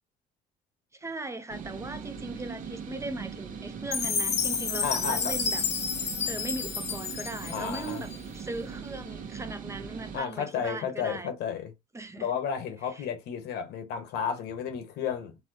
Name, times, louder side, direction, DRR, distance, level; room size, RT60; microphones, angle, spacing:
voice 1, 0.9-11.4 11.9-12.3 12.9-13.1, right 2 dB, 15° right, 0.5 m, -39 dB
sound 1, 1.5-10.2, right 6 dB, 50° right, 0.8 m, -40 dB
Chime, 3.9-8.2, left 5 dB, 40° left, 0.8 m, -30 dB
voice 2, 4.8-5.3 7.5-8.0 10.1-11.7 12.2-15.4, left 7 dB, 80° left, 1.1 m, -32 dB
4.2 x 2.2 x 2.7 m
cardioid pair, 110°, 17 cm